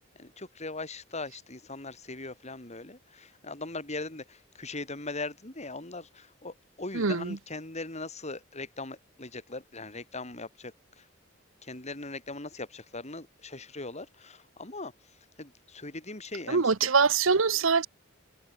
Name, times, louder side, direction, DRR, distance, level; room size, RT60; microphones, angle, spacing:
voice 1, 0.1-11.1 11.6-14.9 15.4-16.6, left 3 dB, 35° left, 4.7 m, -40 dB
voice 2, 6.9-7.4 16.5-17.9, right 5 dB, 90° right, 1.0 m, -24 dB
head